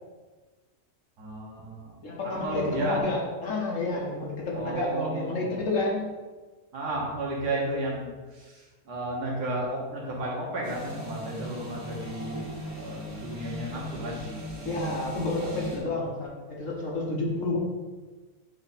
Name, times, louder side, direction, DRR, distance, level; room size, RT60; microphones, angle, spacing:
voice 1, 1.2-1.9 2.2-3.0 4.5-5.5 6.7-12.5 12.7-14.2 15.7-16.0, right 1 dB, 85° right, -3 dB, 2.0 m, -33 dB
voice 2, 2.0-6.1 14.6-17.6, left 2 dB, 55° left, -2 dB, 1.3 m, -30 dB
sound 1, 10.6-15.8, right 1 dB, 65° right, 2.0 m, -38 dB
7.9 x 3.4 x 4.2 m, 1.3 s
omnidirectional pair, 1.7 m